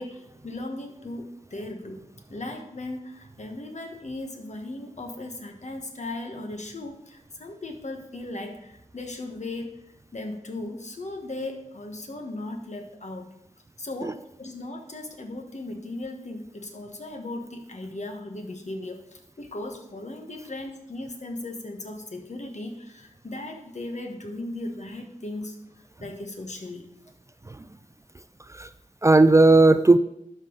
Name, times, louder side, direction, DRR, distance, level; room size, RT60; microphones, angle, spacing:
voice 1, 0.0-9.8 10.1-13.3 13.8-25.5 26.0-26.9, left 2 dB, 60° left, 4 dB, 1.3 m, -37 dB
voice 2, 29.0-30.0, right 2 dB, 20° right, 13 dB, 0.3 m, -16 dB
11.5 x 5.4 x 3.9 m, 0.80 s
wide cardioid pair, 65°, 14 cm